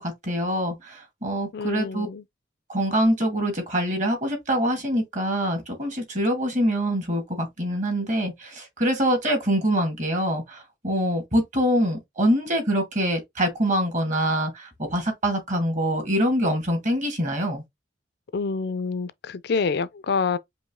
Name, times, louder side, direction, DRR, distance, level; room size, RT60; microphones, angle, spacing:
voice 1, 0.0-2.1 2.7-17.6, equal, 40° right, 2.0 m, -24 dB
voice 2, 1.5-2.2 18.3-20.4, left 4 dB, 55° left, 0.4 m, -27 dB
5.2 x 2.7 x 3.6 m
head